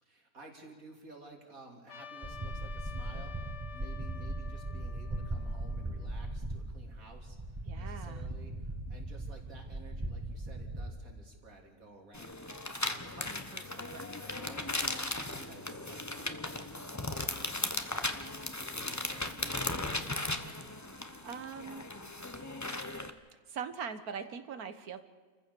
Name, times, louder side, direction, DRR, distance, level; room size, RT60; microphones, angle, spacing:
voice 1, 0.0-16.3 16.8-20.0, right 3 dB, 70° right, 2 dB, 3.5 m, -54 dB
Trumpet, 1.9-6.3, left 6 dB, 55° left, 1.3 m, -50 dB
sound 1, 2.2-10.9, right 1 dB, 15° right, 1.6 m, -39 dB
voice 2, 7.7-8.2 20.9-21.8 23.5-25.0, right 6 dB, 90° right, 10 dB, 1.7 m, -41 dB
sound 2, 12.1-23.1, left 2 dB, 15° left, 0.9 m, -37 dB
29.0 x 15.0 x 6.9 m, 1.5 s
omnidirectional pair, 1.5 m